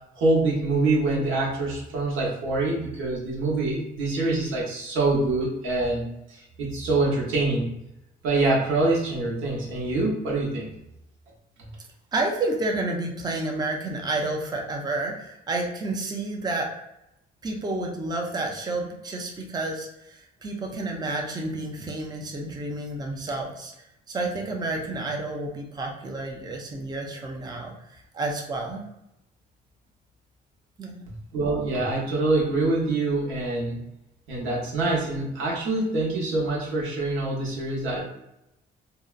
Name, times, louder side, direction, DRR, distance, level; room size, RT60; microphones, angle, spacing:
voice 1, 0.1-6.0 6.3-7.7 8.2-10.7 11.6-11.7 31.3-33.8 34.3-38.0, right 2 dB, 85° right, -3 dB, 0.9 m, -25 dB
voice 2, 12.1-16.7 17.4-23.7 24.1-28.8 30.8-31.0, right 2 dB, 20° right, 0 dB, 0.5 m, -30 dB
2.7 x 2.1 x 2.4 m, 0.85 s
cardioid pair, 90°, 20 cm